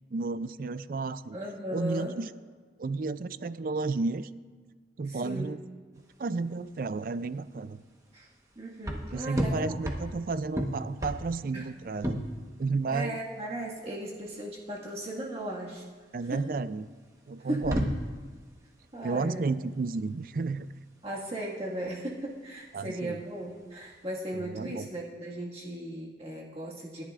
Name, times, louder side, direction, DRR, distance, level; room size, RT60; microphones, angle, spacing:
voice 1, 0.1-1.4 1.7-2.3 2.8-4.3 5.0-5.6 6.2-7.8 9.1-12.2 12.6-13.2 16.1-16.9 17.3-17.9 19.0-20.7 22.7-23.2 24.3-24.8, right 3 dB, 50° right, 14 dB, 0.4 m, -32 dB
voice 2, 1.3-2.1 5.0-5.6 8.1-8.3 8.6-9.8 11.5-11.7 12.9-15.8 16.3-16.4 17.5-17.8 18.9-19.5 21.0-27.0, right 1 dB, 35° right, -4 dB, 1.7 m, -37 dB
sound 1, 6.0-24.2, equal, 20° right, 1.1 m, -37 dB
27.5 x 11.0 x 2.4 m, 1.5 s
head